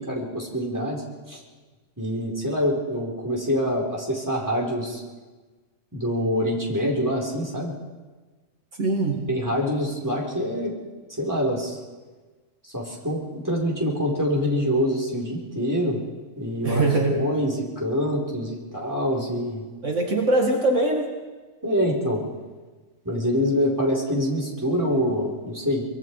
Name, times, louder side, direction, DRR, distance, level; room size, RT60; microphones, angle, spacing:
voice 1, 0.0-1.4 2.0-5.0 5.9-7.7 9.3-10.7 11.2-11.8 12.6-16.0 16.3-16.8 17.1-19.6 21.6-22.2 23.0-25.9, equal, 15° right, -2 dB, 4.6 m, -25 dB
voice 2, 8.8-9.3 16.6-17.2 19.8-21.1, right 2 dB, 65° right, 1 dB, 2.3 m, -22 dB
24.5 x 22.5 x 4.8 m, 1.3 s
omnidirectional pair, 1.4 m